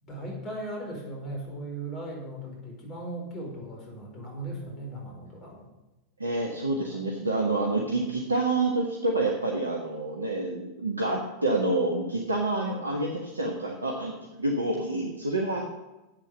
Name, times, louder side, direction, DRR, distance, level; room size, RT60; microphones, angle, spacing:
voice 1, 0.0-5.7 6.9-7.0, right 1 dB, 30° left, 0 dB, 5.0 m, -38 dB
voice 2, 6.2-15.7, right 2 dB, 80° right, 0 dB, 1.6 m, -28 dB
12.5 x 8.8 x 5.7 m, 1.0 s
figure-of-eight pair, 90°, 0 cm